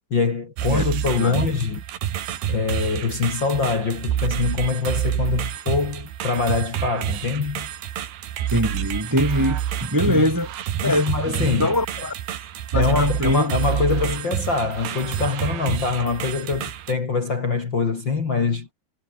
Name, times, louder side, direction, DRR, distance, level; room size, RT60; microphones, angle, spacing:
voice 1, 0.1-1.8 2.5-7.7 10.1-10.3 10.8-11.8 12.8-18.7, left 4 dB, 35° left, 2.3 m, -24 dB
sound 1, 0.6-16.9, right 11 dB, 80° right, 4.1 m, -28 dB
voice 2, 8.5-10.5 10.8-12.1 12.7-13.5, equal, 5° right, 2.0 m, -23 dB
omnidirectional pair, 4.6 m